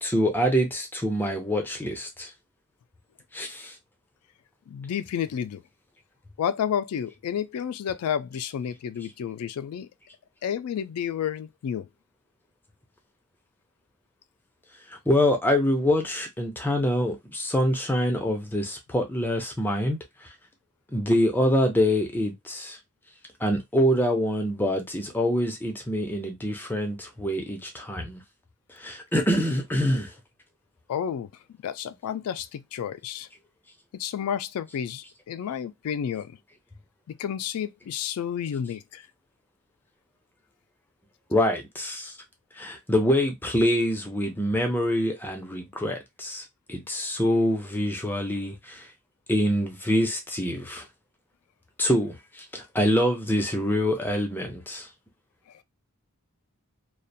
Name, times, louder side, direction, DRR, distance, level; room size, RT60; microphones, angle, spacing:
voice 1, 0.0-2.3 3.3-3.7 15.1-20.0 20.9-22.8 23.4-28.2 28.8-30.1 41.3-42.1 42.6-48.9 49.3-50.9 51.8-54.9, equal, 10° left, 0.5 m, -25 dB
voice 2, 4.7-5.6 6.4-9.9 10.4-11.9 30.9-31.3 31.6-33.3 33.9-36.3 37.1-39.1 55.5-55.6, left 8 dB, 75° left, 0.3 m, -31 dB
2.4 x 2.1 x 2.6 m
head